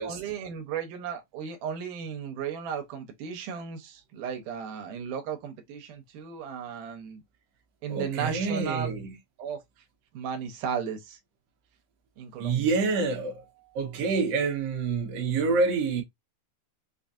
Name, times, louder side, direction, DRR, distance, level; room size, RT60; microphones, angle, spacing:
voice 1, 0.0-7.2 7.8-9.0 9.4-9.6 10.1-11.2 12.2-12.7, right 7 dB, 85° right, 2.3 m, -35 dB
voice 2, 7.9-9.1 12.4-13.5 13.7-16.0, right 4 dB, 60° right, 1.9 m, -27 dB
5.3 x 2.4 x 2.6 m
omnidirectional pair, 3.6 m